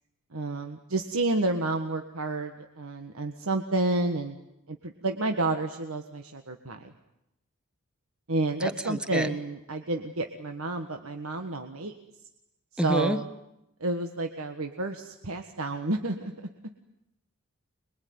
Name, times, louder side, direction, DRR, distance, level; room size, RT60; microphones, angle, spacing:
voice 1, 0.3-4.4 4.7-6.9 8.3-11.9 12.7-13.3 13.8-16.3, right 2 dB, 75° right, 5 dB, 1.6 m, -30 dB
voice 2, 8.6-9.3 12.8-13.2, equal, 5° right, 11 dB, 1.2 m, -28 dB
26.0 x 22.5 x 9.5 m, 0.85 s
head